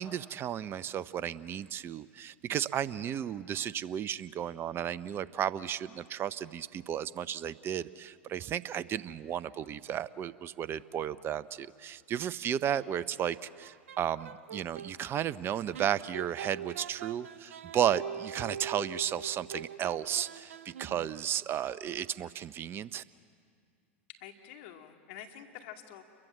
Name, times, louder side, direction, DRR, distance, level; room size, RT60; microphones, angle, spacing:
voice 1, 0.0-23.0, right 10 dB, 35° right, 16 dB, 0.7 m, -34 dB
sound 1, 13.5-14.9 15.7-21.2, right 8 dB, 80° right, 0.7 m, -43 dB
voice 2, 24.2-26.0, left 10 dB, 65° left, 4 dB, 2.4 m, -47 dB
29.0 x 22.5 x 7.5 m, 2.2 s
hypercardioid pair, 95°, 7 cm